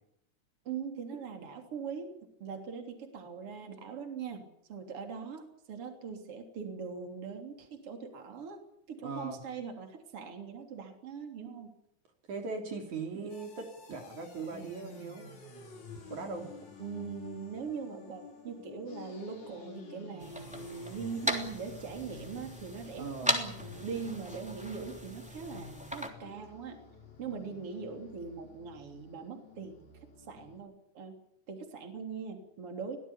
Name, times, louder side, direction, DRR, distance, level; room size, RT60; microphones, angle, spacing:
voice 1, 0.7-2.1 2.4-8.6 8.9-11.7 13.1-13.3 16.8-26.8 27.2-29.9 30.3-31.2 31.5-33.0, right 5 dB, 45° right, 4 dB, 4.1 m, -41 dB
voice 2, 9.0-9.4 12.3-15.3 16.1-16.5 23.0-23.4, right 4 dB, 70° right, 3 dB, 4.7 m, -39 dB
sound 1, 13.3-30.6, left 3 dB, 65° left, 5.4 m, -51 dB
sound 2, 20.2-26.1, equal, ahead, 2.9 m, -37 dB
23.5 x 18.0 x 9.9 m, 0.75 s
omnidirectional pair, 3.6 m